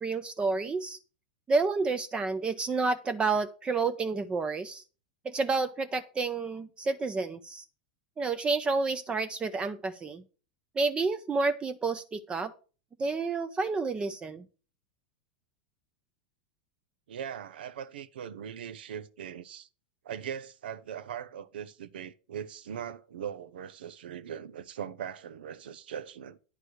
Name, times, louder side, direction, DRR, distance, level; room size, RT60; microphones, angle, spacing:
voice 1, 0.0-1.0 1.5-4.8 5.2-7.6 8.2-10.2 10.8-12.5 13.0-14.5, right 4 dB, 20° right, 0.6 m, -30 dB
voice 2, 17.1-19.7 20.0-26.4, right 8 dB, 85° right, 0.8 m, -40 dB
9.8 x 4.8 x 6.4 m
hypercardioid pair, 120°, 5 cm